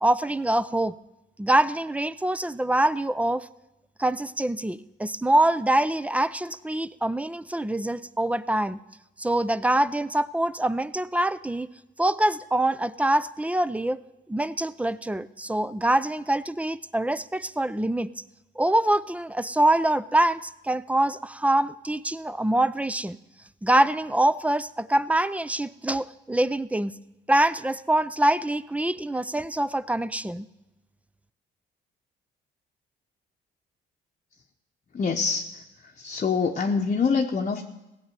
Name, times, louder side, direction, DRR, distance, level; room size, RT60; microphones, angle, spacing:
voice 1, 0.0-1.0 1.4-3.5 4.0-8.8 9.2-11.7 12.0-14.0 14.3-18.1 18.6-23.2 23.6-26.9 27.3-30.5, right 1 dB, 5° right, 17 dB, 0.4 m, -24 dB
voice 2, 34.9-35.5 36.0-37.6, left 5 dB, 40° left, 2 dB, 0.9 m, -25 dB
16.0 x 6.8 x 9.1 m, 0.95 s
cardioid pair, 90°, 20 cm